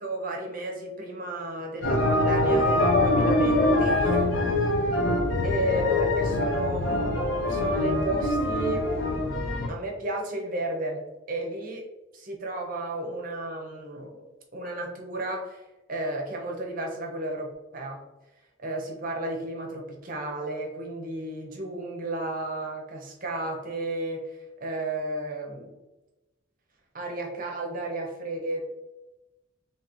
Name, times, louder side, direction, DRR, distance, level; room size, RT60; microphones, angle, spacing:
voice 1, 0.0-4.9 5.4-8.9 9.7-11.0 11.3-11.8 12.1-14.2 14.5-18.0 18.6-25.7 26.9-28.6, right 1 dB, 40° right, 1 dB, 0.7 m, -33 dB
sound 1, 1.8-9.7, left 1 dB, 60° left, 0.6 m, -24 dB
3.7 x 2.8 x 3.0 m, 1.0 s
head